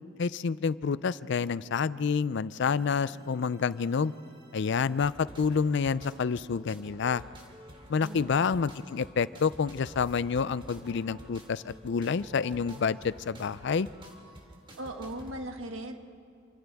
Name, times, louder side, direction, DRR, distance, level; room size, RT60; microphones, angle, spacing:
voice 1, 0.2-4.1 4.5-7.2 7.9-13.9, left 5 dB, 60° left, 17 dB, 0.4 m, -28 dB
sound 1, 2.7-15.3, right 1 dB, 25° right, 2.5 m, -50 dB
voice 2, 14.8-15.9, right 1 dB, 80° right, 4 dB, 1.6 m, -38 dB
29.0 x 25.0 x 3.5 m, 2.4 s
head